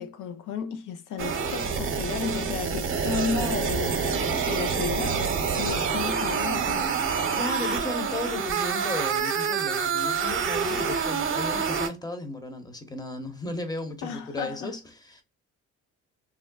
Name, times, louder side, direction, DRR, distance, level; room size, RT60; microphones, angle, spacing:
voice 1, 0.0-6.9 14.0-14.8, left 6 dB, 75° left, 0.5 m, -33 dB
sound 1, 1.2-11.9, right 6 dB, 45° right, 0.8 m, -27 dB
voice 2, 7.3-15.2, left 2 dB, 15° left, 0.8 m, -35 dB
3.6 x 2.1 x 2.2 m
cardioid pair, 90°, 30 cm